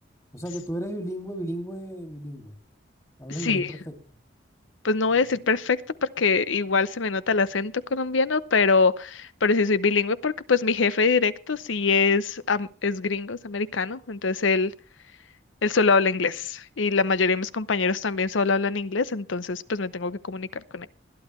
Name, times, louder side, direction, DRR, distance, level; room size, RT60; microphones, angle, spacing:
voice 1, 0.3-2.6 3.2-3.8, equal, 15° left, 5 dB, 2.5 m, -34 dB
voice 2, 4.8-5.8 6.2-14.7 15.6-20.9, left 4 dB, 75° left, 16 dB, 0.8 m, -24 dB
21.0 x 11.0 x 3.1 m, 0.37 s
head